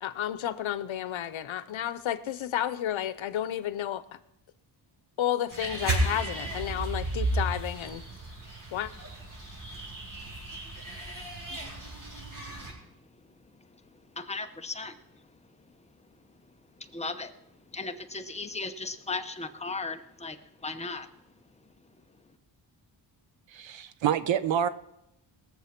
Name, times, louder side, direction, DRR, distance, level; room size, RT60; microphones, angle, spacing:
voice 1, 0.0-4.2 5.2-8.0 8.7-8.9, left 11 dB, 85° left, 0.9 m, -31 dB
sound 1, 5.5-12.7, right 1 dB, 40° right, 4.6 m, -33 dB
voice 2, 12.6-15.4 15.8-15.9 16.3-21.2 21.7-22.0, left 3 dB, 15° left, 0.8 m, -38 dB
voice 3, 23.5-24.7, right 9 dB, 70° right, 0.8 m, -27 dB
20.5 x 7.1 x 5.9 m
wide cardioid pair, 130°, 46 cm